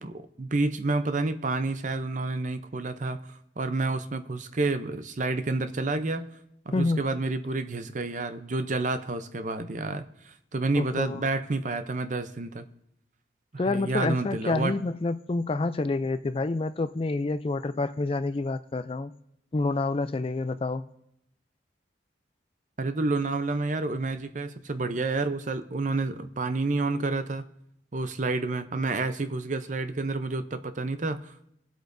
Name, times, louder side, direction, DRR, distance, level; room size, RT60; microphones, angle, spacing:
voice 1, 0.0-6.3 6.7-12.6 13.5-14.8 22.8-27.5 27.9-31.5, right 3 dB, 40° right, 0.6 m, -29 dB
voice 2, 6.7-7.0 10.8-11.2 13.6-19.1 19.5-20.9, left 3 dB, 30° left, 0.3 m, -28 dB
22.0 x 8.2 x 2.6 m
head